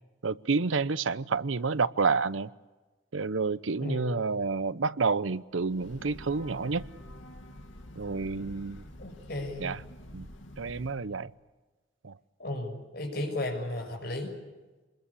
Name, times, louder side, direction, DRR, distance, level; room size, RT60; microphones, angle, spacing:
voice 1, 0.2-2.5 3.1-6.8 8.0-8.8 9.6-9.8 10.1-10.3 10.6-11.3 12.0-12.1, right 4 dB, 90° right, 0.8 m, -29 dB
voice 2, 3.8-4.3 9.0-9.7 12.4-14.3, left 1 dB, 55° left, 6.1 m, -34 dB
Breathing / Train, 5.5-11.1, left 1 dB, 80° left, 2.4 m, -47 dB
26.5 x 21.5 x 8.4 m
head